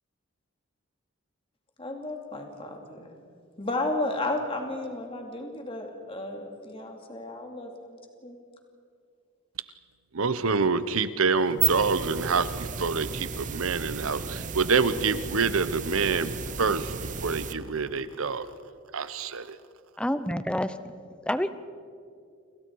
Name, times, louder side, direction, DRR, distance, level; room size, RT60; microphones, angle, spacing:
voice 1, 1.8-3.1 3.6-8.4, left 2 dB, 25° left, 3 dB, 2.7 m, -33 dB
voice 2, 10.1-16.3 16.6-16.9 17.2-18.5 18.9-19.5, right 4 dB, 80° right, 13 dB, 1.0 m, -26 dB
sound 1, 11.4-17.5, right 7 dB, 35° right, 0.8 m, -33 dB
voice 3, 20.0-20.7 21.3-21.5, equal, 5° left, 12 dB, 0.7 m, -27 dB
29.0 x 27.5 x 4.8 m, 2.4 s
head